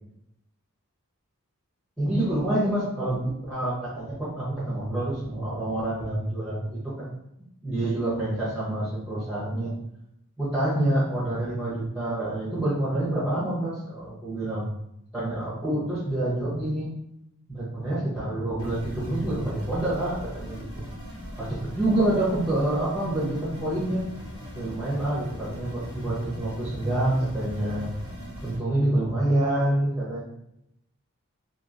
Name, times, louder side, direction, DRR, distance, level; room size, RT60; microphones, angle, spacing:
voice 1, 2.0-7.1 7.6-9.7 10.4-14.7 15.1-16.9 17.5-20.8 21.4-24.0 24.6-27.9 28.4-30.2, right 1 dB, ahead, -9 dB, 0.7 m, -27 dB
sound 1, 18.6-28.6, equal, 60° left, 1.2 m, -39 dB
2.8 x 2.7 x 2.5 m, 0.80 s
head